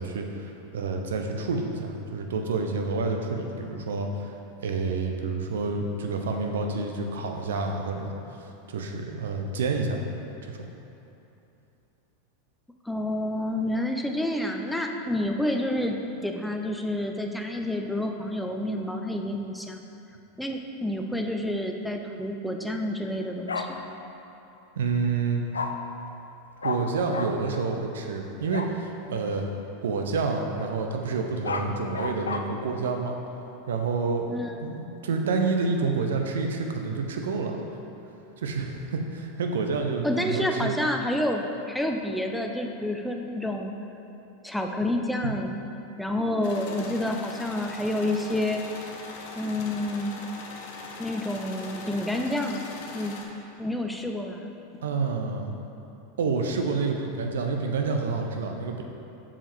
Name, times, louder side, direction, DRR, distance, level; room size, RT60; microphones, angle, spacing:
voice 1, 0.0-4.3 4.6-8.4 8.7-10.0 10.4-10.7 24.8-25.4 26.6-29.5 29.8-33.2 33.7-34.3 34.6-37.6 38.4-40.8 45.2-45.3 54.8-55.5 56.2-58.8, right 4 dB, 70° right, 3 dB, 0.6 m, -28 dB
voice 2, 12.8-16.0 16.2-19.8 20.4-23.9 34.3-34.5 40.0-43.7 44.4-45.6 46.0-48.6 49.4-50.3 51.0-53.2 53.6-54.5, left 1 dB, 5° left, 2 dB, 0.5 m, -29 dB
Bark, 23.5-23.7 25.5-25.7 26.6-26.8 27.1-27.3 28.5-28.7 31.2-32.4, left 5 dB, 85° left, 0.4 m, -30 dB
sound 1, 46.4-53.2, left 4 dB, 60° left, 0.8 m, -41 dB
7.1 x 4.9 x 3.6 m, 2.9 s
hypercardioid pair, 90°, 0 cm